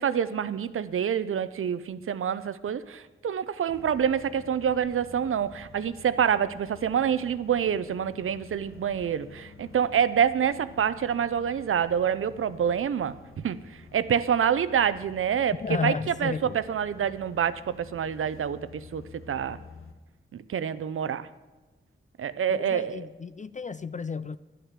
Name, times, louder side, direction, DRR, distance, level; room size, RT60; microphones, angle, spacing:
voice 1, 0.0-15.9 16.2-19.6 20.3-21.3 22.2-23.1, right 8 dB, 90° right, 0.6 m, -27 dB
sound 1, 3.7-19.9, left 5 dB, 90° left, 1.3 m, -50 dB
voice 2, 15.6-16.6 22.5-24.4, left 5 dB, 35° left, 0.4 m, -32 dB
11.0 x 10.0 x 7.3 m
wide cardioid pair, 65°, 21 cm